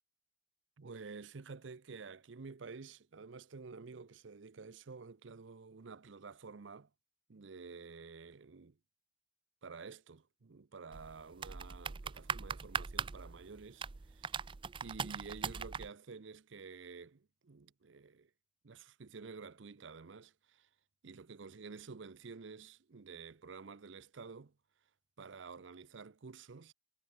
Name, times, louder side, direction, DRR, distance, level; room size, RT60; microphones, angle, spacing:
voice 1, 0.8-6.9 7.3-8.8 9.6-14.4 14.8-18.3 18.6-20.7 21.0-24.5 25.2-26.7, right 4 dB, 70° right, 0.6 m, -50 dB
sound 1, 10.9-15.9, right 6 dB, 25° right, 0.4 m, -40 dB
head